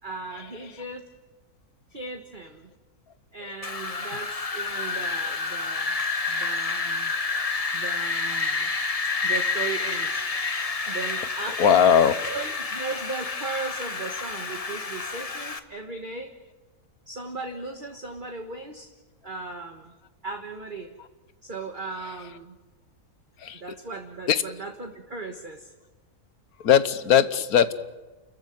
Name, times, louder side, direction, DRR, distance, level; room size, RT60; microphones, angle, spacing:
voice 1, 0.0-1.1 1.9-2.7 3.3-7.1 7.7-8.7 9.2-10.3 10.9-16.3 17.1-18.9 19.2-19.9 20.2-20.9 21.4-22.6 23.5-25.7, right 3 dB, 35° right, 4 dB, 1.6 m, -37 dB
Wind, 3.6-15.6, left 4 dB, 25° left, 1.0 m, -29 dB
voice 2, 11.6-12.2 23.4-23.6 24.3-24.4 26.6-27.7, left 8 dB, 75° left, 13 dB, 1.5 m, -19 dB
29.5 x 14.5 x 9.5 m, 1.2 s
omnidirectional pair, 1.6 m